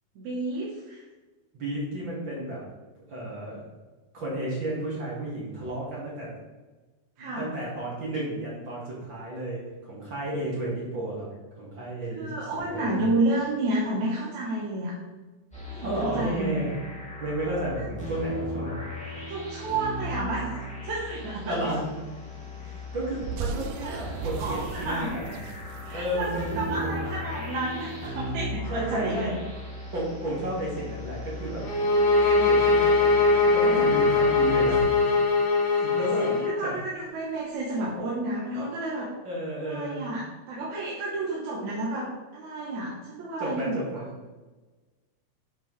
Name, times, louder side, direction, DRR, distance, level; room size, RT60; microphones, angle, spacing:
voice 1, 0.2-1.0 7.2-7.5 12.1-14.9 15.7-16.6 19.3-20.5 20.8-21.6 23.8-25.1 25.8-29.3 35.8-39.1 39.6-43.8, right 2 dB, 60° right, -5 dB, 2.3 m, -31 dB
voice 2, 1.5-2.6 3.1-3.6 4.1-6.3 7.2-11.3 11.6-13.0 15.8-16.7 17.2-18.8 21.4-21.8 22.6-25.4 25.9-27.0 28.7-29.3 29.9-31.6 32.2-35.1 35.7-36.3 36.6-36.7 39.2-40.1 43.4-44.1, right 1 dB, 35° right, -6 dB, 2.5 m, -32 dB
sound 1, 15.5-34.9, left 1 dB, 5° left, 1.6 m, -37 dB
sound 2, 23.2-27.6, right 5 dB, 85° right, 1.9 m, -37 dB
sound 3, 31.6-36.5, left 3 dB, 85° left, 3.2 m, -21 dB
9.2 x 6.7 x 3.4 m, 1.2 s
omnidirectional pair, 4.2 m